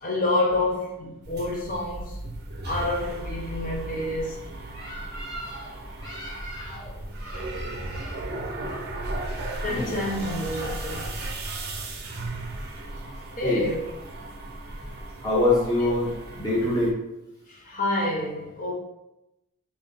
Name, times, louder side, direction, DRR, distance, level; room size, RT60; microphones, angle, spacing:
voice 1, 0.0-2.2 2.6-4.4 9.6-11.0 13.4-13.8 17.5-18.7, left 2 dB, 35° left, -3 dB, 0.6 m, -28 dB
sound 1, 1.2-16.9, right 2 dB, 45° right, 0.5 m, -36 dB
voice 2, 4.7-5.7 6.0-6.9 7.2-8.2 8.5-8.6 9.1-9.9 13.4-13.6 15.2-17.0, left 2 dB, 15° left, -8 dB, 1.3 m, -28 dB
3.7 x 2.7 x 3.4 m, 0.90 s
head